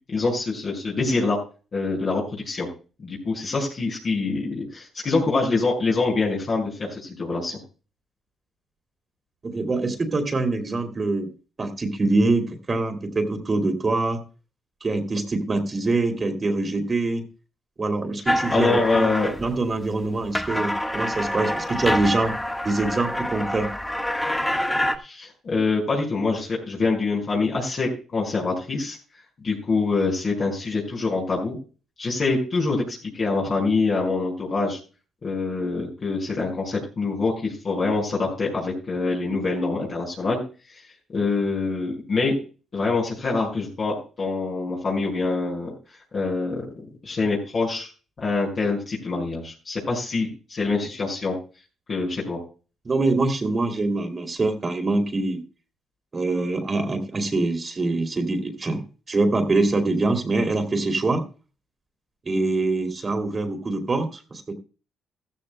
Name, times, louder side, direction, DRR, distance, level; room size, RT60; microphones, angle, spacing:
voice 1, 0.1-1.4 1.7-2.7 3.0-7.6 18.5-19.3 25.0-29.0 29.4-31.6 32.0-34.8 35.2-40.4 41.1-42.4 42.7-45.7 46.1-46.6 47.0-47.9 48.2-51.3 51.9-52.4, left 3 dB, 45° left, -3 dB, 5.2 m, -25 dB
voice 2, 9.4-11.3 11.6-14.2 14.8-17.2 17.8-19.1 19.4-22.4 22.6-23.7 52.8-55.4 56.1-58.8 59.1-61.2 62.2-64.5, right 2 dB, 30° right, 6 dB, 2.8 m, -24 dB
sound 1, 18.3-19.7 20.1-25.0, left 1 dB, 10° left, 1.4 m, -26 dB
15.0 x 14.5 x 2.2 m, 0.35 s
cardioid pair, 90°, 0 cm